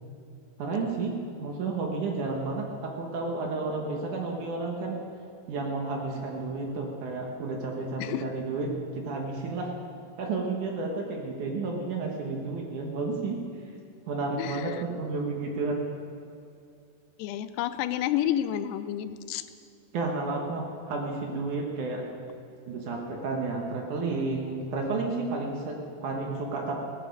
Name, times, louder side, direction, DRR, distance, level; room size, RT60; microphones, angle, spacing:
voice 1, 0.6-5.0 5.5-9.7 10.2-13.4 14.1-15.8 19.9-22.1 22.7-26.8, right 3 dB, 60° right, 1 dB, 2.3 m, -31 dB
voice 2, 8.0-8.3 14.4-14.8 17.2-19.5, left 11 dB, 90° left, 13 dB, 2.8 m, -30 dB
17.0 x 13.5 x 5.3 m, 2.6 s
omnidirectional pair, 4.7 m